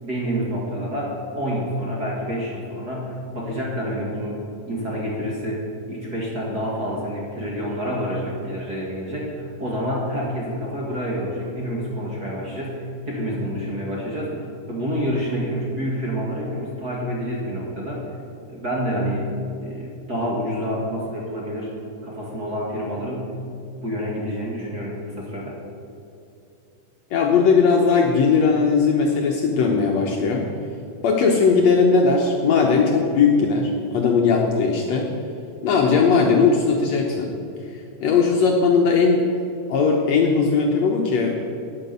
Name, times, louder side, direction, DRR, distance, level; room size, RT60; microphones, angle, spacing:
voice 1, 0.0-18.1 18.5-19.3 19.6-21.7 22.0-23.4 23.8-25.6, equal, 35° right, -4 dB, 1.9 m, -28 dB
voice 2, 27.1-30.4 31.0-35.1 35.6-37.3 38.0-39.3 39.7-41.3, left 5 dB, 65° left, 0 dB, 1.8 m, -18 dB
9.8 x 9.4 x 8.1 m, 2.6 s
omnidirectional pair, 3.9 m